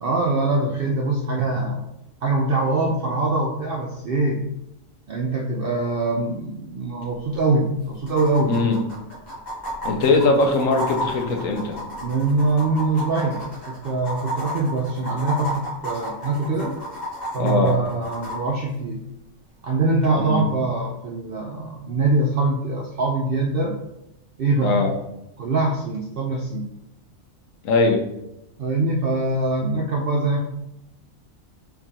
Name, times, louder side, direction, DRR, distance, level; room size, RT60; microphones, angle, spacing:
voice 1, 0.0-1.8 2.2-4.4 5.1-8.5 12.0-16.8 17.3-19.0 19.6-23.8 24.4-24.8 25.4-26.7 28.6-30.4, right 2 dB, 65° right, 0 dB, 0.5 m, -23 dB
sound 1, 7.0-7.1 7.3-7.4 8.1-18.4 20.0-20.1, equal, 30° left, 1.5 m, -32 dB
voice 2, 8.5-8.8 9.8-11.8 17.4-17.8 20.2-20.4 24.6-24.9 27.6-28.0, left 3 dB, 70° left, 3 dB, 1.1 m, -20 dB
4.6 x 3.7 x 2.8 m, 0.86 s
omnidirectional pair, 1.5 m